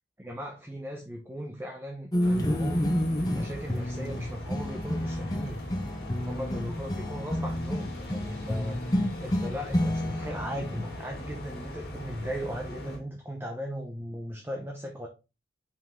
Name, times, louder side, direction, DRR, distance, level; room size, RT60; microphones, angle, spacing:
voice 1, 0.2-2.9 3.3-5.6 6.2-15.1, equal, 15° right, 1 dB, 0.8 m, -37 dB
sound 1, 2.1-12.7, left 1 dB, 20° left, 0.8 m, -31 dB
sound 2, 2.2-13.0, equal, 60° left, 2.2 m, -40 dB
5.5 x 5.3 x 3.6 m, 0.28 s
head